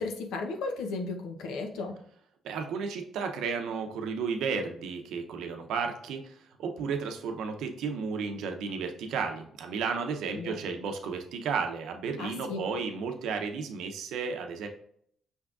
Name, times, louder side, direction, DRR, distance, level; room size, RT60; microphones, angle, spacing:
voice 1, 0.0-2.0 10.4-10.6 12.2-12.6, left 3 dB, 90° left, 4 dB, 0.7 m, -35 dB
voice 2, 2.4-14.7, right 5 dB, 85° right, 5 dB, 0.7 m, -33 dB
5.5 x 3.5 x 2.4 m, 0.65 s
cardioid pair, 90°, 0 cm